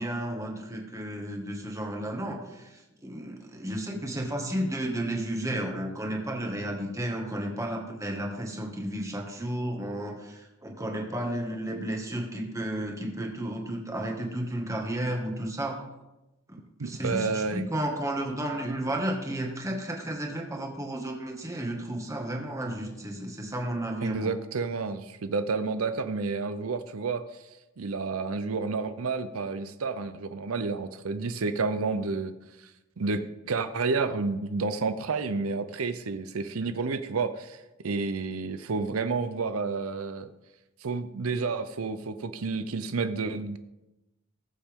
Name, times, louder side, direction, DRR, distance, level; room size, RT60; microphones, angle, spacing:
voice 1, 0.0-15.8 16.5-16.6 16.8-24.3, right 1 dB, 15° right, 1 dB, 1.9 m, -32 dB
voice 2, 16.8-17.7 24.0-27.4 27.8-32.3 32.6-32.7 33.0-40.3 40.8-43.6, right 4 dB, 80° right, 10 dB, 0.6 m, -30 dB
19.5 x 7.2 x 3.7 m, 1.0 s
head